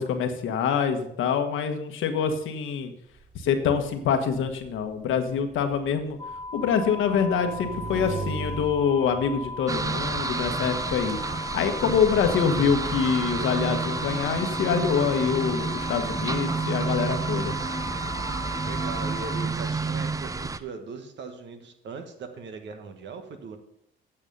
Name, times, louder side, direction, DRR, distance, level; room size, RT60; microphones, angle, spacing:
voice 1, 0.0-2.9 3.3-6.2 6.5-11.2 11.5-17.5, left 7 dB, 80° left, 6 dB, 1.3 m, -25 dB
Motorcycle / Engine, 3.1-10.2, right 4 dB, 35° right, 1.0 m, -40 dB
sound 1, 6.2-19.5, left 2 dB, 15° left, 1.4 m, -37 dB
sound 2, 9.7-20.6, right 4 dB, 15° right, 0.5 m, -30 dB
voice 2, 18.6-23.6, right 5 dB, 65° right, 7 dB, 1.4 m, -39 dB
8.8 x 7.3 x 5.4 m, 0.74 s
cardioid pair, 90°, 20 cm